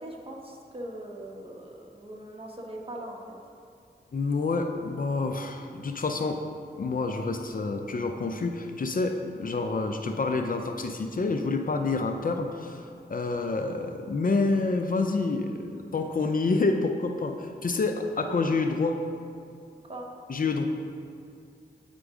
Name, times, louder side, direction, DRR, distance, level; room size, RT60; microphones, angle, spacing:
voice 1, 0.0-3.4 19.8-20.0, right 1 dB, 35° right, -1 dB, 1.1 m, -40 dB
voice 2, 4.1-6.4 6.8-12.8 13.1-19.0 20.3-20.7, left 3 dB, 55° left, 5 dB, 0.5 m, -28 dB
9.0 x 3.8 x 4.8 m, 2.3 s
wide cardioid pair, 70°, 17 cm